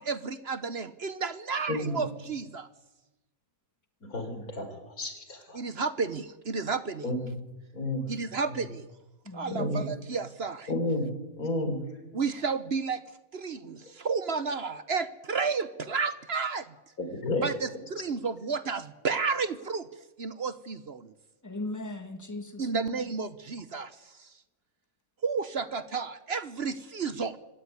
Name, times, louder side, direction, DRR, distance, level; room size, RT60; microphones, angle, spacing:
voice 1, 0.0-2.7 5.5-7.1 8.1-8.9 9.3-10.7 12.1-13.0 13.3-16.7 17.4-19.9 20.2-21.1 22.6-24.3 25.2-27.4, right 5 dB, 50° right, 14 dB, 1.2 m, -32 dB
voice 2, 1.7-2.0 4.0-5.6 7.0-7.3 7.7-8.1 8.5-8.6 9.5-9.9 10.7-11.1 11.4-11.8 17.0-17.5, left 1 dB, 90° left, 7 dB, 4.6 m, -31 dB
voice 3, 9.3-9.8 21.4-23.0, left 2 dB, 10° left, 8 dB, 2.0 m, -38 dB
25.0 x 17.0 x 9.7 m, 1.1 s
omnidirectional pair, 1.5 m